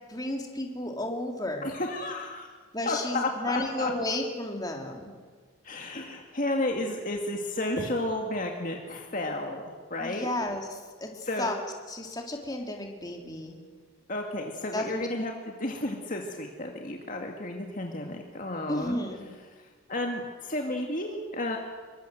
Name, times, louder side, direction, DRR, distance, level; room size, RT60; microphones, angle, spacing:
voice 1, 0.1-1.7 2.7-5.1 10.0-10.7 11.0-11.1 11.4-11.6 11.9-13.5 14.7-15.0 18.7-19.2, left 1 dB, 20° left, 2 dB, 3.2 m, -32 dB
voice 2, 1.6-2.5 2.9-3.9 5.6-9.6 9.9-10.3 11.2-11.5 14.1-19.0 19.5-21.6, left 2 dB, 40° left, 2 dB, 2.2 m, -32 dB
27.0 x 23.5 x 7.7 m, 1.5 s
head